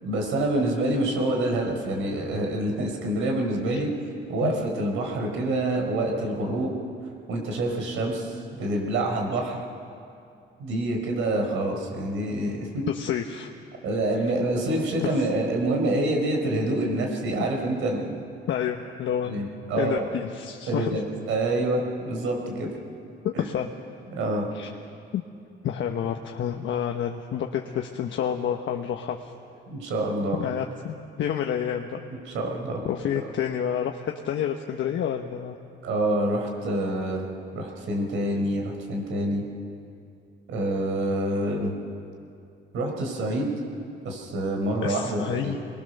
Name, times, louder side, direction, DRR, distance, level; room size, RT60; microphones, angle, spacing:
voice 1, 0.0-3.9 4.3-6.7 7.3-9.6 10.6-12.8 13.8-18.2 19.2-20.0 20.7-22.7 23.3-23.5 24.1-24.5 29.7-30.4 32.3-32.8 33.1-33.2 35.8-37.2 37.5-39.4 40.5-41.7 42.7-43.5 44.0-45.6, right 1 dB, 85° right, 2 dB, 4.5 m, -27 dB
voice 2, 12.9-13.5 15.0-15.1 18.5-19.4 19.7-21.0 23.2-23.7 24.5-24.7 25.1-25.2 25.6-29.3 30.4-32.0 32.8-35.6 44.8-45.6, left 9 dB, 70° left, 3 dB, 1.2 m, -29 dB
23.5 x 21.0 x 6.7 m, 2.5 s
cardioid pair, 90°, 20 cm